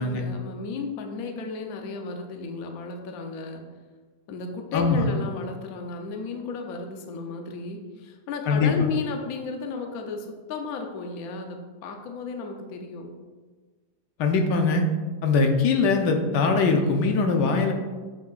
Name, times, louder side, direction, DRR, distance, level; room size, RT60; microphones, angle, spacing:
voice 1, 0.0-3.6 4.3-13.1, left 4 dB, 65° left, 3 dB, 1.1 m, -34 dB
voice 2, 4.7-5.1 8.5-8.7 14.2-14.8 15.2-17.7, left 4 dB, 90° left, 3 dB, 1.4 m, -21 dB
7.1 x 6.1 x 2.4 m, 1.4 s
omnidirectional pair, 1.8 m